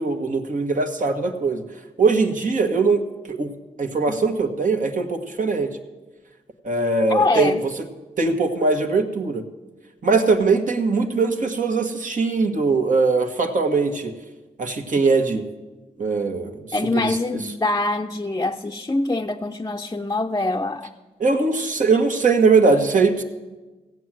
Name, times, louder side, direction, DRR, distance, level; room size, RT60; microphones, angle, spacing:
voice 1, 0.0-1.6 2.0-3.0 3.3-3.5 3.8-5.7 6.6-7.5 8.2-9.4 10.0-14.1 14.6-15.4 16.0-16.6 16.9-17.2 21.2-23.2, right 4 dB, 60° right, 4 dB, 1.5 m, -20 dB
voice 2, 7.1-7.6 16.7-20.9, left 2 dB, 20° left, 2 dB, 0.6 m, -24 dB
15.5 x 7.8 x 7.5 m, 1.2 s
cardioid pair, 50°, 15 cm